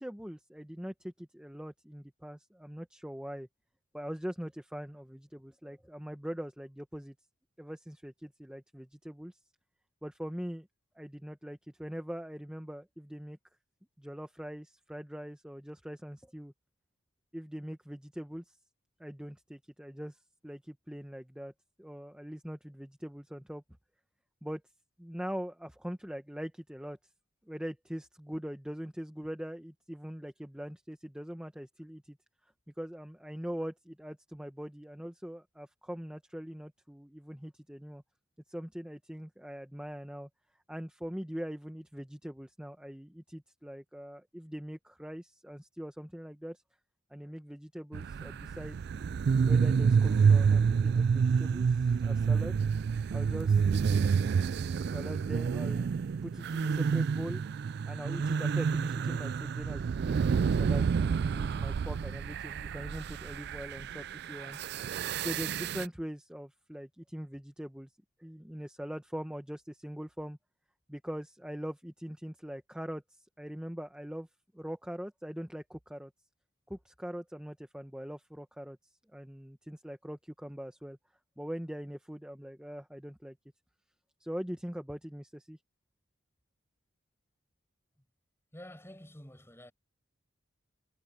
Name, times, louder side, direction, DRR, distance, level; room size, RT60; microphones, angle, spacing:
voice 1, 0.0-3.5 3.9-7.1 7.6-9.4 10.0-10.7 11.0-13.4 14.0-16.5 17.3-18.6 19.0-21.5 21.8-23.6 24.4-24.6 25.0-27.0 27.5-32.2 32.8-38.0 38.5-40.3 40.7-46.6 47.1-48.8 49.5-52.6 53.1-54.5 54.8-55.9 56.2-57.4 57.9-60.9 61.3-64.6 65.2-67.9 68.2-70.4 70.9-74.3 74.5-76.1 76.7-81.0 81.4-83.4 84.2-85.6, equal, 5° right, 0.9 m, -42 dB
sound 1, 47.9-65.9, right 6 dB, 55° right, 0.3 m, -28 dB
voice 2, 88.5-89.7, left 1 dB, 10° left, 6.6 m, -49 dB
head